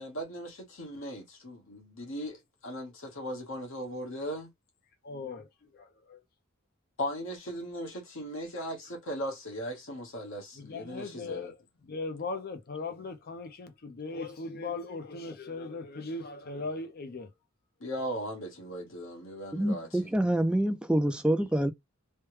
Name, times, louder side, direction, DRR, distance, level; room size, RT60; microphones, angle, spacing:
voice 1, 0.0-4.5 7.0-11.5 17.8-20.1, equal, 65° left, 1.3 m, -38 dB
voice 2, 5.0-6.2 10.5-17.3 21.5-21.6, left 3 dB, 45° left, 0.6 m, -39 dB
voice 3, 19.5-21.7, right 1 dB, 5° right, 0.4 m, -26 dB
3.3 x 2.2 x 3.1 m
head